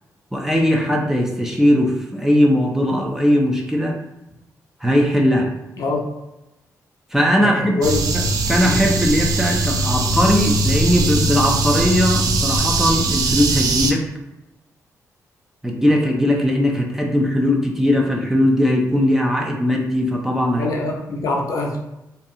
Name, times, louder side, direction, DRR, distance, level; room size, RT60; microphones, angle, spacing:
voice 1, 0.3-4.0 4.8-5.5 7.1-14.0 15.6-20.7, equal, 5° right, 0 dB, 0.4 m, -19 dB
voice 2, 7.4-8.0 8.6-8.8 20.6-21.8, left 3 dB, 70° left, -1 dB, 0.6 m, -24 dB
sound 1, 7.8-13.9, right 2 dB, 75° right, 0.4 m, -20 dB
2.6 x 2.3 x 2.6 m, 0.96 s
cardioid pair, 90°, 6 cm